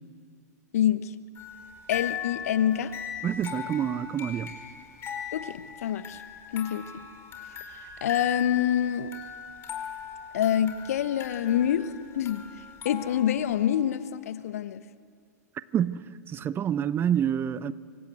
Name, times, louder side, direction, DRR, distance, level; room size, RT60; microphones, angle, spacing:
voice 1, 0.7-1.1 1.9-2.9 5.3-6.2 6.5-6.9 8.0-9.1 10.3-12.4 12.8-14.8, left 10 dB, 60° left, 1.2 m, -26 dB
sound 1, 1.3-13.7, left 8 dB, 25° left, 5.1 m, -39 dB
voice 2, 3.2-4.5 15.7-17.7, right 9 dB, 25° right, 0.8 m, -27 dB
26.5 x 25.5 x 8.2 m
figure-of-eight pair, 95°, 9 cm